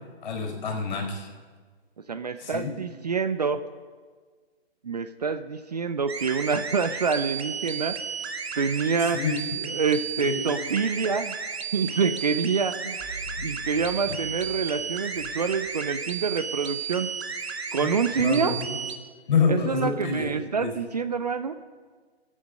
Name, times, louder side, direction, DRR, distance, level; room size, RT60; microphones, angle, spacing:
voice 1, 0.2-1.3 2.4-2.7 9.1-9.4 10.2-10.4 14.1-14.2 17.8-18.8 19.3-20.3 20.6-20.7, left 5 dB, 45° left, 2 dB, 4.6 m, -27 dB
voice 2, 2.1-3.6 4.8-8.0 8.6-9.2 9.6-11.4 11.7-17.1 17.7-18.5 19.5-21.5, right 5 dB, 40° right, 11 dB, 0.5 m, -27 dB
sound 1, 6.1-19.0, right 6 dB, 75° right, 1.6 m, -34 dB
sound 2, 13.0-16.5, equal, 5° left, 3.4 m, -44 dB
22.5 x 8.6 x 5.2 m, 1.5 s
hypercardioid pair, 165°, 32 cm